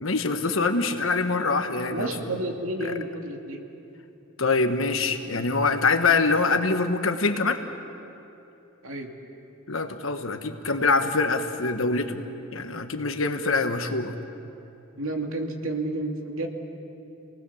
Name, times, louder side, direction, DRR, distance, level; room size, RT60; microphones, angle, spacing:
voice 1, 0.0-2.1 2.8-2.9 4.4-7.6 9.7-12.2 12.5-14.1, left 3 dB, 75° left, 7 dB, 1.4 m, -24 dB
voice 2, 1.9-3.6 8.8-9.1 15.0-16.5, right 2 dB, 85° right, 3 dB, 2.5 m, -31 dB
28.5 x 19.0 x 7.2 m, 2.9 s
head